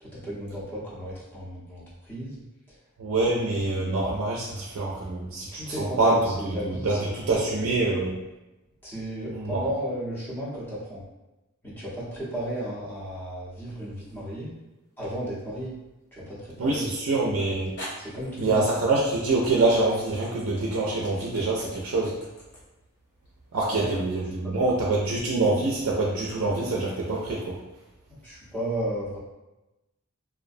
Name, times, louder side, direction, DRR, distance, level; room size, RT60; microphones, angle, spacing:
voice 1, 0.0-2.4 2.7-2.8 3.1-3.3 5.5-7.0 7.3-7.7 8.8-11.0 11.6-14.6 15.0-15.8 16.1-16.9 18.0-18.6 23.7-24.0 24.4-24.6 28.1-29.2, right 1 dB, 10° left, -9 dB, 0.7 m, -34 dB
voice 2, 3.0-8.2 9.3-9.6 16.6-17.7 18.4-22.2 23.5-27.6, right 2 dB, 70° right, -3 dB, 0.4 m, -25 dB
sound 1, 13.7-14.3 15.0-15.1 17.0-17.1 17.8-24.0, equal, 55° left, 0.8 m, -44 dB
2.4 x 2.1 x 2.5 m, 1.0 s
head